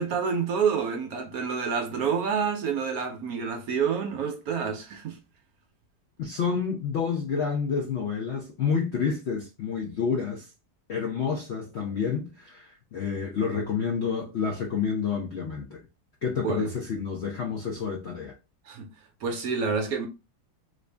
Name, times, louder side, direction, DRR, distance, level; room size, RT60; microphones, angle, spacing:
voice 1, 0.0-5.2 16.4-16.7 18.7-18.9 19.2-20.1, right 6 dB, 70° right, 1.0 m, -28 dB
voice 2, 6.2-10.5 10.9-15.8 16.2-18.3, left 6 dB, 65° left, 0.6 m, -29 dB
3.1 x 2.6 x 3.3 m
omnidirectional pair, 1.9 m